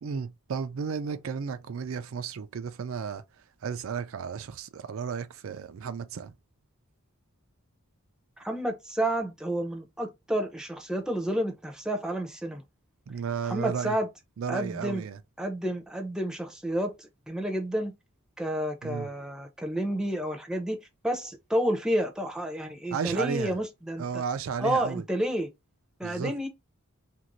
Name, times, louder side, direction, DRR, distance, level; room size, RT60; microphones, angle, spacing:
voice 1, 0.0-3.2 3.6-6.3 13.1-14.0 14.4-15.2 18.8-19.1 22.9-23.5 24.0-25.0 26.0-26.3, right 6 dB, 70° right, 0.4 m, -33 dB
voice 2, 8.4-12.6 13.4-14.1 14.5-15.0 15.4-17.9 18.4-20.8 21.0-24.2 24.6-25.5 26.0-26.5, right 1 dB, 5° right, 0.6 m, -30 dB
2.9 x 2.6 x 3.0 m
head